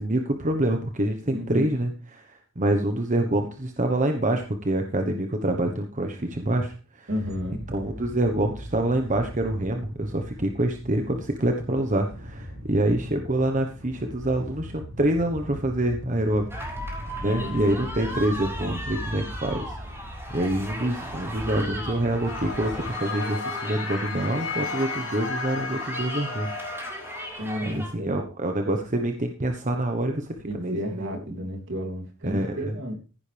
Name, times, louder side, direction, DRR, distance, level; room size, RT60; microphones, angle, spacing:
voice 1, 0.0-7.1 7.7-16.6 17.2-19.8 20.3-26.5 27.7-31.1 32.2-32.7, right 1 dB, 40° right, 4 dB, 1.2 m, -26 dB
voice 2, 1.3-1.8 7.1-7.7 17.2-18.8 27.4-28.2 30.5-33.0, equal, 65° right, 2 dB, 3.2 m, -33 dB
sound 1, 7.2-22.9, equal, 90° right, 7.9 m, -39 dB
sound 2, 16.5-27.9, equal, 10° right, 5.7 m, -37 dB
sound 3, 22.3-27.3, left 4 dB, 65° left, 3.3 m, -34 dB
15.5 x 10.0 x 3.5 m, 0.36 s
head